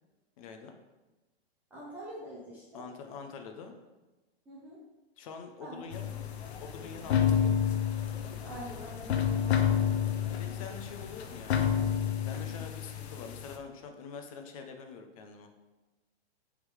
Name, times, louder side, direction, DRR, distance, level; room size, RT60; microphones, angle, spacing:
voice 1, 0.4-0.7 2.7-3.7 5.2-6.1 6.6-7.6 10.4-11.6 12.3-15.5, left 5 dB, 35° left, 5 dB, 0.6 m, -45 dB
voice 2, 1.7-2.8 4.5-4.8 5.6-5.8 6.0-6.1 8.4-9.9, equal, 5° right, -8 dB, 0.4 m, -45 dB
sound 1, 5.9-13.6, left 8 dB, 90° left, 0.8 m, -30 dB
6.4 x 3.7 x 4.8 m, 1.1 s
hypercardioid pair, 160°, 31 cm